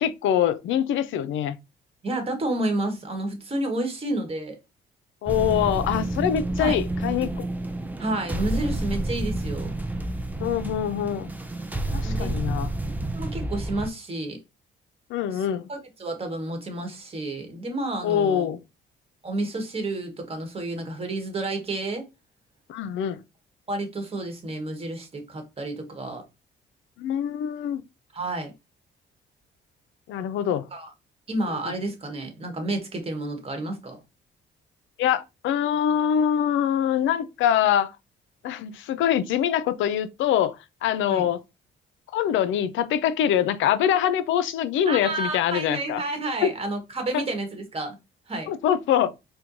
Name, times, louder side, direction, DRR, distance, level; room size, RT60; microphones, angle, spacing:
voice 1, 0.0-1.6 5.2-7.5 10.4-11.3 11.9-12.7 15.1-15.7 18.0-18.6 22.7-23.2 27.0-27.8 30.1-30.7 35.0-37.9 38.4-40.6 40.8-41.4 42.1-46.0 46.4-46.5 47.1-47.2 48.5-49.1, left 9 dB, 80° left, 0.4 m, -24 dB
voice 2, 2.0-4.6 6.6-6.8 8.0-9.7 12.0-12.3 13.1-14.4 15.3-18.5 19.2-22.0 23.7-26.2 28.1-28.5 30.7-30.9 31.3-34.0 41.1-41.3 44.9-48.0 48.3-48.5, right 2 dB, 30° right, 1.2 m, -30 dB
sound 1, 5.3-13.9, right 1 dB, 10° right, 0.5 m, -29 dB
4.3 x 2.2 x 2.6 m
cardioid pair, 90°, 20 cm